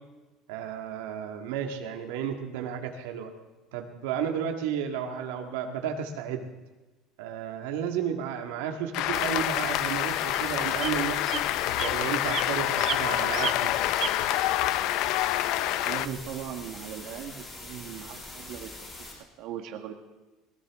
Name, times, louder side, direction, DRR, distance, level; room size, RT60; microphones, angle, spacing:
voice 1, 0.5-3.3 3.7-6.5 7.2-11.4 11.8-13.7, right 8 dB, 90° right, 3 dB, 1.9 m, -33 dB
Cheering / Applause, 8.9-16.1, left 14 dB, 55° left, 0.5 m, -27 dB
sound 1, 9.1-19.1, left 2 dB, 15° left, 7.0 m, -43 dB
sound 2, 10.3-10.4 10.8-10.9 11.3-11.4 11.8-12.0 12.3-12.5 12.8-13.0 13.3-13.5 13.9-14.1, right 11 dB, 40° right, 0.9 m, -32 dB
voice 2, 15.8-18.7 19.4-19.9, right 9 dB, 55° right, 3 dB, 1.6 m, -38 dB
20.0 x 19.0 x 3.7 m, 1.1 s
cardioid pair, 160°, 0 cm